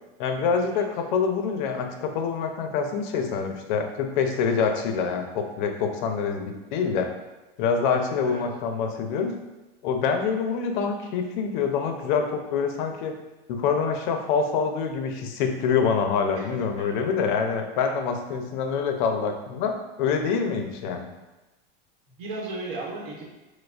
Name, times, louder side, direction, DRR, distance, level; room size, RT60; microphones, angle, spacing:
voice 1, 0.2-7.1 7.6-9.3 9.8-13.1 13.5-21.1, left 6 dB, 55° left, 5 dB, 0.5 m, -26 dB
voice 2, 16.8-17.1 22.1-23.3, right 2 dB, 60° right, -2 dB, 1.0 m, -36 dB
4.7 x 2.0 x 2.4 m, 1.1 s
supercardioid pair, 155°, 30 cm